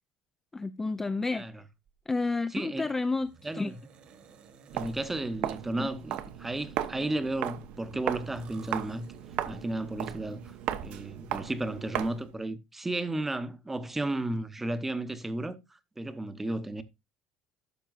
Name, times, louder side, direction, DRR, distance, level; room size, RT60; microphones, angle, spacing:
voice 1, 0.5-1.5 2.1-3.7 5.8-5.9, left 3 dB, 15° left, 0.4 m, -30 dB
sound 1, 1.9-2.3 3.2-5.2 5.7-7.1 7.8-9.8 10.4-11.3, right 6 dB, 50° right, 1.5 m, -56 dB
voice 2, 2.5-2.9 3.4-3.8 4.7-9.1 9.4-10.5 10.8-16.8, right 2 dB, 10° right, 0.8 m, -33 dB
Walk footsteps, 4.7-12.3, right 11 dB, 65° right, 0.9 m, -37 dB
12.0 x 6.8 x 2.5 m
cardioid pair, 130°, 2 cm